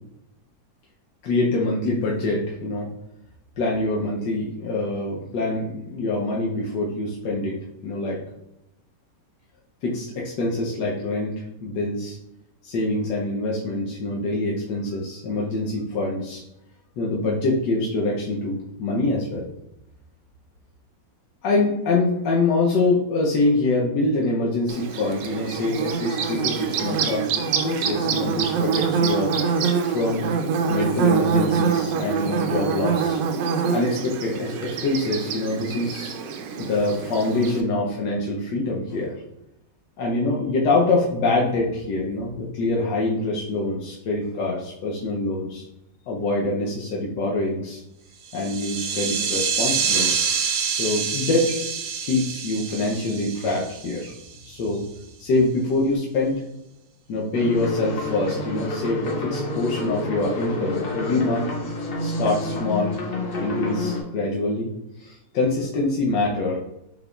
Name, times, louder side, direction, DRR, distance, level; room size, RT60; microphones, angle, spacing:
voice 1, 1.2-2.9 3.6-7.6 7.8-8.2 9.8-11.3 11.6-12.2 12.6-16.4 17.0-19.5 21.4-30.2 30.7-33.2 33.7-36.2 36.6-39.2 40.0-45.6 46.1-47.8 48.3-50.1 50.8-51.6 52.0-54.1 54.4-54.8 55.2-56.4 57.1-61.5 62.0-62.9 63.4-64.7 65.0-66.6, left 2 dB, 75° left, -3 dB, 1.3 m, -25 dB
Bird / Buzz, 24.7-37.6, right 6 dB, 85° right, 1.3 m, -25 dB
sound 1, 48.2-54.3, right 6 dB, 60° right, 1.0 m, -26 dB
sound 2, 57.3-64.0, left 2 dB, 45° left, 0.7 m, -28 dB
5.8 x 3.7 x 2.3 m, 0.86 s
omnidirectional pair, 1.9 m